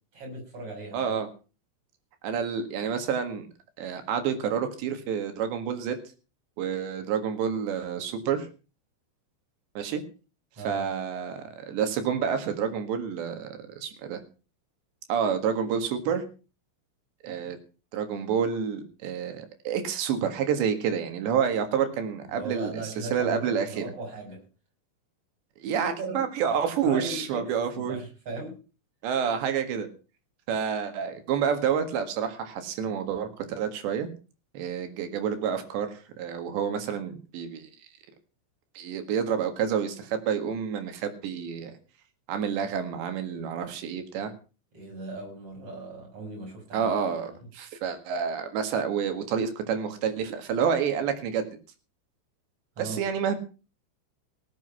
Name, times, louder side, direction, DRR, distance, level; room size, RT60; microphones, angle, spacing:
voice 1, 0.1-1.2 10.6-10.8 22.3-24.4 25.6-26.3 26.8-28.6 44.7-46.9 47.3-47.4 52.8-53.1, right 3 dB, 30° right, 0 dB, 6.7 m, -38 dB
voice 2, 0.9-1.3 2.2-3.5 3.8-6.0 6.6-8.5 9.8-10.0 10.7-13.5 13.8-14.2 15.1-16.2 17.2-17.6 17.9-22.8 23.1-23.8 25.6-28.0 29.0-29.9 30.5-34.1 34.5-37.7 38.8-41.7 42.3-44.3 46.7-51.4 52.8-53.4, right 7 dB, 70° right, 8 dB, 3.8 m, -28 dB
18.0 x 8.0 x 5.7 m, 0.35 s
omnidirectional pair, 5.5 m